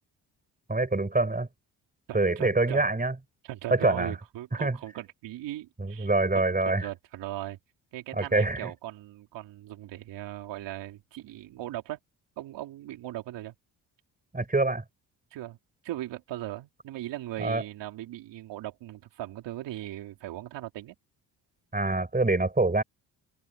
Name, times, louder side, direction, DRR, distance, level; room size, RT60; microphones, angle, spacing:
voice 1, 0.7-1.5 2.1-3.1 3.7-4.1 4.6-4.8 5.8-6.9 8.1-8.7 14.3-14.8 17.4-17.6 21.7-22.8, right 2 dB, 20° right, 7.2 m, -25 dB
voice 2, 2.1-2.8 3.4-6.1 6.7-7.6 7.9-12.0 12.4-13.5 15.3-15.6 15.8-20.9, right 14 dB, 80° right, 3.9 m, -38 dB
supercardioid pair, 60°, 42 cm